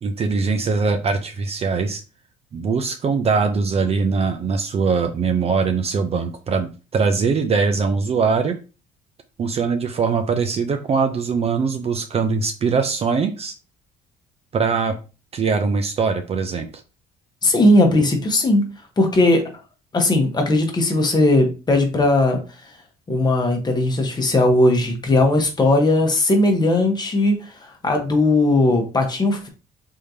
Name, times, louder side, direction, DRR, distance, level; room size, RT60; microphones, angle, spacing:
voice 1, 0.0-2.0 2.5-8.6 9.4-13.5 14.5-15.0 15.3-16.7, right 5 dB, 35° right, 7 dB, 0.5 m, -21 dB
voice 2, 17.4-18.6 19.0-19.4 19.9-22.4 23.1-27.4 27.8-29.5, left 2 dB, 25° left, 3 dB, 1.1 m, -18 dB
3.6 x 3.2 x 2.7 m, 0.32 s
cardioid pair, 110°, 17 cm